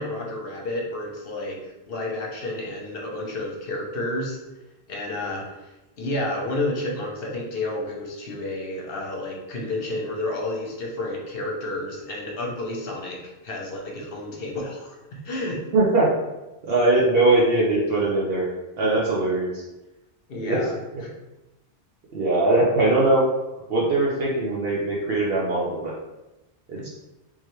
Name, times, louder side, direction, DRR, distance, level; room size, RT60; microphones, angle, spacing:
voice 1, 0.0-1.6 1.9-4.4 4.9-5.5 6.0-13.2 13.4-15.6 20.3-20.7 21.0-21.1, left 2 dB, 60° left, 0 dB, 1.0 m, -30 dB
voice 2, 15.7-16.1 16.6-18.5 18.8-19.6 20.5-20.6 22.1-23.3 23.7-25.9 26.7-26.9, right 2 dB, 65° right, -4 dB, 0.9 m, -21 dB
3.6 x 3.2 x 3.1 m, 1.0 s
omnidirectional pair, 1.1 m